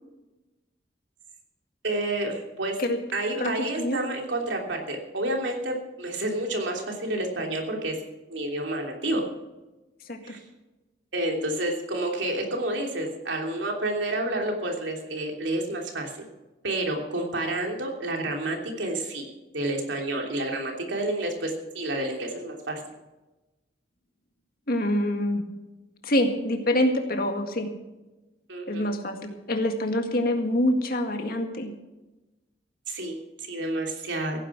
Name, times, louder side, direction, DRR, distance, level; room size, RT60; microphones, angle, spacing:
voice 1, 1.8-2.8 3.1-8.0 8.3-9.2 10.2-10.4 11.1-16.1 16.6-19.3 19.5-22.8 28.5-28.9 32.9-34.4, right 1 dB, 90° right, 1 dB, 3.1 m, -29 dB
voice 2, 3.4-4.0 10.1-10.4 24.7-25.4 26.0-27.7 28.7-31.7, left 1 dB, 55° left, 5 dB, 1.9 m, -26 dB
16.0 x 10.0 x 6.1 m, 1.1 s
head